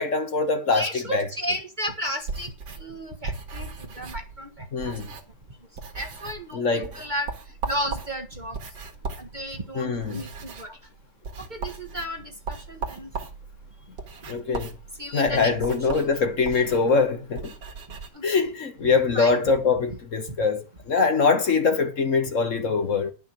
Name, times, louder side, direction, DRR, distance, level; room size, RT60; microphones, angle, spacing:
voice 1, 0.0-1.3 4.7-5.1 6.5-7.0 9.7-10.2 14.3-14.7 15.1-17.5 18.2-23.1, left 4 dB, 50° left, 1.5 m, -23 dB
voice 2, 0.7-2.5 2.8-4.9 5.9-7.3 7.7-8.6 9.2-10.8 11.4-13.1 15.0-15.5 18.1-18.2 19.1-19.4 20.3-20.4, equal, 30° right, 1.3 m, -33 dB
sound 1, 2.2-5.5 5.7-6.5 6.8-18.1, right 4 dB, 90° right, 2.3 m, -37 dB
11.0 x 6.0 x 7.2 m
omnidirectional pair, 1.8 m